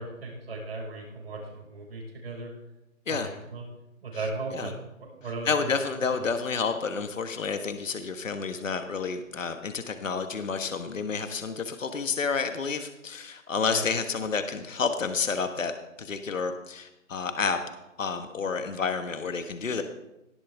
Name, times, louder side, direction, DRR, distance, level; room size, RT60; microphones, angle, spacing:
voice 1, 0.0-2.5 3.1-3.6 4.0-5.7 6.1-6.3 13.7-13.9, right 3 dB, 45° right, -1 dB, 5.5 m, -37 dB
voice 2, 5.4-15.7 16.0-17.6 18.0-19.8, left 5 dB, 70° left, 8 dB, 1.4 m, -30 dB
18.0 x 12.0 x 3.5 m, 0.93 s
hypercardioid pair, 170°, 41 cm